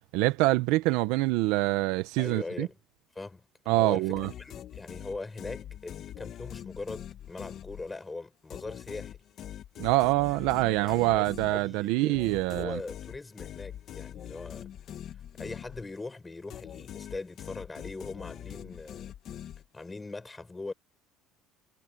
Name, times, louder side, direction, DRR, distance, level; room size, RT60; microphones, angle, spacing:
voice 1, 0.1-2.7 3.7-4.3 9.8-12.8, right 20 dB, 85° right, 0.7 m, -25 dB
voice 2, 2.2-2.8 3.1-9.2 10.6-14.7 15.4-19.1 19.7-20.7, left 3 dB, 10° left, 6.3 m, -41 dB
sound 1, 4.1-8.1 8.5-16.1 16.5-20.0, left 10 dB, 45° left, 1.3 m, -43 dB
cardioid pair, 150°, 0 cm